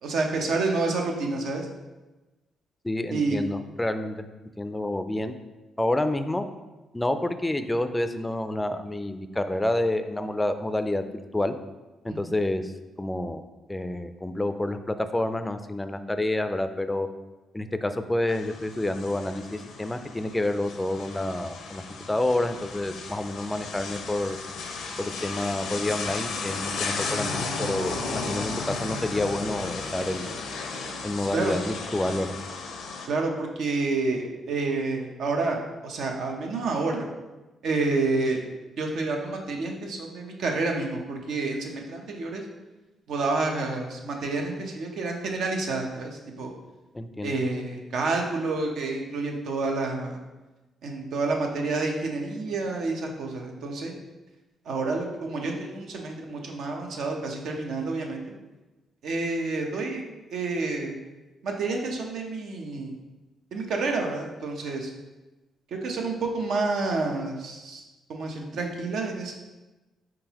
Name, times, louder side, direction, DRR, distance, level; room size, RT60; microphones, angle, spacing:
voice 1, 0.0-1.7 3.1-3.4 12.1-12.3 31.3-31.5 33.1-37.1 37.6-38.5 38.8-42.4 43.1-46.5 47.2-50.2 50.8-53.9 54.6-58.2 59.0-60.0 60.3-60.9 61.4-62.9 63.5-64.9 65.7-67.8 68.1-69.3, right 3 dB, 75° right, 1 dB, 0.7 m, -29 dB
voice 2, 2.8-4.3 4.6-5.4 5.8-6.5 6.9-11.1 11.3-11.6 12.0-12.7 13.0-13.4 13.7-17.1 17.5-21.8 22.1-24.4 25.0-30.3 31.0-32.3 46.9-47.4, left 1 dB, 15° left, 9 dB, 0.4 m, -28 dB
sound 1, 18.3-33.1, left 4 dB, 80° left, 0.5 m, -34 dB
4.6 x 3.8 x 2.9 m, 1.1 s
cardioid pair, 75°, 0 cm